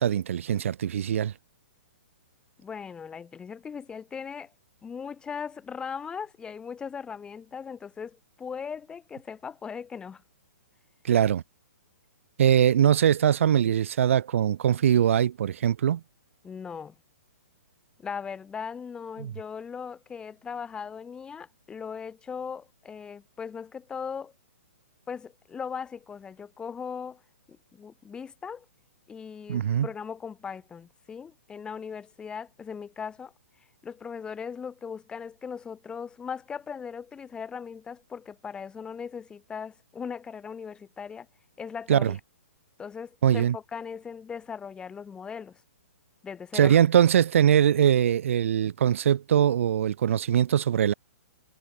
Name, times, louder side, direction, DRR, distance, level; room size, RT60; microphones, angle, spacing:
voice 1, 0.0-1.3 11.0-11.4 12.4-16.0 19.2-19.3 29.5-29.9 41.9-42.1 43.2-43.6 46.5-50.9, right 9 dB, 60° right, 2.6 m, -22 dB
voice 2, 2.6-4.5 4.8-10.2 16.4-16.9 18.0-24.3 25.1-27.2 27.5-28.7 29.1-33.3 33.8-41.3 41.6-42.2 42.8-45.6 46.2-46.8, left 6 dB, 10° left, 2.2 m, -38 dB
hypercardioid pair, 150°, 8 cm